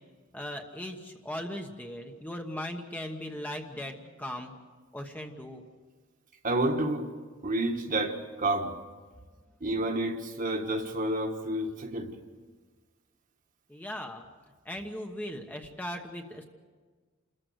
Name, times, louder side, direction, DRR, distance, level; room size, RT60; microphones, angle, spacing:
voice 1, 0.3-4.5 4.9-5.6 13.7-14.3 14.6-16.4, left 1 dB, 10° left, 3 dB, 1.1 m, -38 dB
voice 2, 6.4-7.1 7.4-8.7 9.6-12.1, right 1 dB, 40° right, 3 dB, 1.7 m, -29 dB
28.0 x 14.5 x 8.0 m, 1.5 s
head